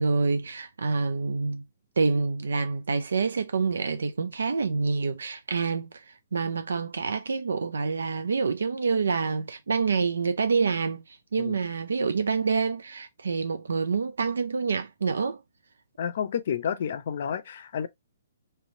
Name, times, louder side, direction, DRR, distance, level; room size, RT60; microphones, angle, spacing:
voice 1, 0.0-1.6 2.0-15.4, right 4 dB, 85° right, 0.4 m, -27 dB
voice 2, 16.0-17.9, left 8 dB, 55° left, 0.5 m, -30 dB
3.2 x 3.0 x 2.6 m
hypercardioid pair, 150°, 0 cm